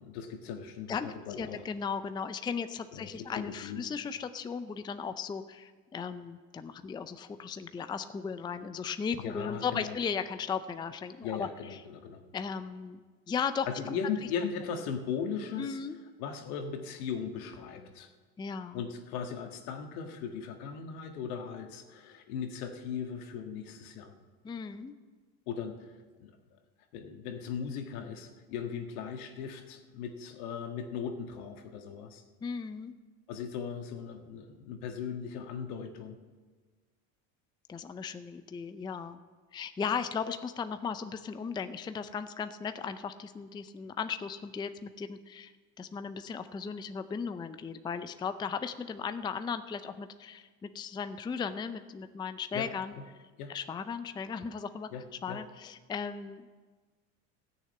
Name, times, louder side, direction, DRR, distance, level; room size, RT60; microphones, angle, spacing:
voice 1, 0.0-1.6 2.9-3.8 9.2-10.0 11.2-12.2 13.7-15.8 16.2-18.1 18.7-24.1 25.5-25.9 26.2-26.6 26.9-32.2 33.3-36.2 52.5-52.7 53.0-53.1 53.4-53.5 54.9-55.4, left 7 dB, 80° left, 4 dB, 1.8 m, -38 dB
voice 2, 0.9-11.8 12.3-13.0 13.3-13.9 15.6-16.0 18.4-18.8 24.4-24.9 32.4-33.0 37.7-39.2 39.5-45.5 45.8-52.9 53.5-54.9 55.2-56.5, left 6 dB, 10° left, 11 dB, 0.4 m, -36 dB
14.5 x 6.7 x 8.9 m, 1.4 s
supercardioid pair, 110°, 43 cm